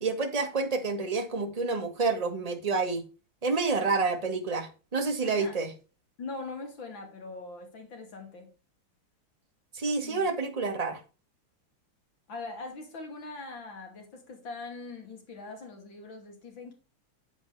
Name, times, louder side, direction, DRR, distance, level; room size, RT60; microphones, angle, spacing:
voice 1, 0.0-3.0 3.4-5.7 9.7-11.0, right 4 dB, 20° right, 1.4 m, -29 dB
voice 2, 3.8-4.1 5.2-5.6 6.2-8.5 10.0-10.3 12.3-16.7, left 3 dB, 60° left, 3.2 m, -42 dB
8.6 x 7.7 x 3.3 m
omnidirectional pair, 2.4 m